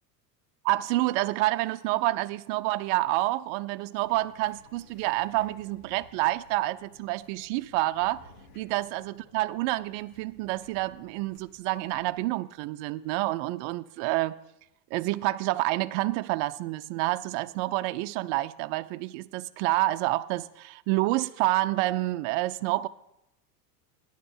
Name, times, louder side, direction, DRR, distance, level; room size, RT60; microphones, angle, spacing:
voice 1, 0.6-8.2 8.6-14.3 14.9-22.9, right 18 dB, 50° right, 0.5 m, -28 dB
sound 1, 4.0-12.3, left 2 dB, 65° left, 1.8 m, -57 dB
10.0 x 6.9 x 6.8 m
hypercardioid pair, 100°, 48 cm